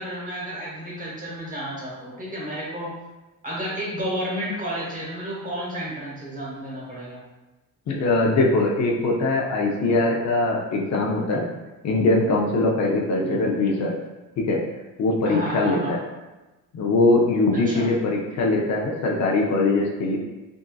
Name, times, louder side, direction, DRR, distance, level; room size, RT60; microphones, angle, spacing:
voice 1, 0.0-2.9 3.4-7.2 13.2-13.5 15.2-16.0 17.6-17.9, equal, 25° right, -5 dB, 1.0 m, -31 dB
voice 2, 7.9-11.5 11.8-13.9 14.4-14.6 15.0-16.0 16.7-20.2, left 2 dB, 55° left, -2 dB, 0.5 m, -21 dB
3.6 x 2.6 x 2.2 m, 1.1 s
cardioid pair, 125°, 33 cm